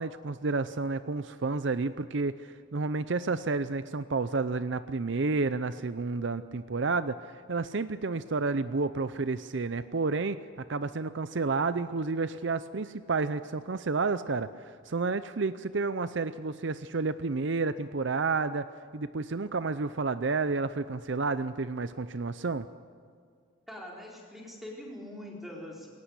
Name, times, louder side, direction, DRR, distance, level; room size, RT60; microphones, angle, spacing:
voice 1, 0.0-10.4 10.7-18.7 18.9-22.7, right 3 dB, 60° right, 13 dB, 0.6 m, -30 dB
voice 2, 23.7-25.9, left 1 dB, ahead, -2 dB, 4.3 m, -43 dB
21.5 x 18.5 x 8.2 m, 2.1 s
head